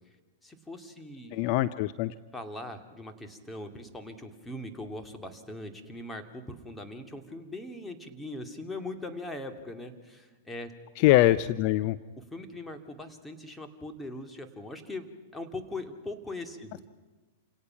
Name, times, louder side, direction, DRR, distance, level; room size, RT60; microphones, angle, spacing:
voice 1, 0.4-1.4 2.3-10.7 12.2-15.1 15.3-16.8, left 2 dB, 10° left, 5 dB, 2.5 m, -40 dB
voice 2, 1.3-2.1 11.0-12.0, left 16 dB, 50° left, 15 dB, 0.6 m, -23 dB
28.5 x 18.0 x 5.9 m, 1.3 s
hypercardioid pair, 110°, 0 cm